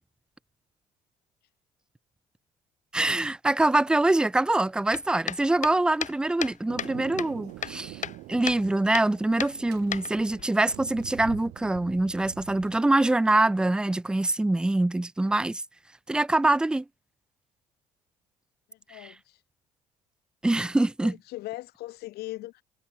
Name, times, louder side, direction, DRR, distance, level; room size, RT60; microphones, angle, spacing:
voice 1, 2.9-8.0 8.3-15.6 16.1-16.8 20.4-21.1, right 2 dB, 5° right, 0.3 m, -24 dB
sound 1, 4.9-6.9 7.2-8.2 8.5-8.6 8.9-9.1 9.4-10.4, left 9 dB, 45° left, 1.0 m, -34 dB
Thunder, 6.7-12.8, right 20 dB, 70° right, 6.3 m, -44 dB
voice 2, 18.7-19.4 21.0-22.6, left 17 dB, 65° left, 1.3 m, -39 dB
hypercardioid pair, 55°, 18 cm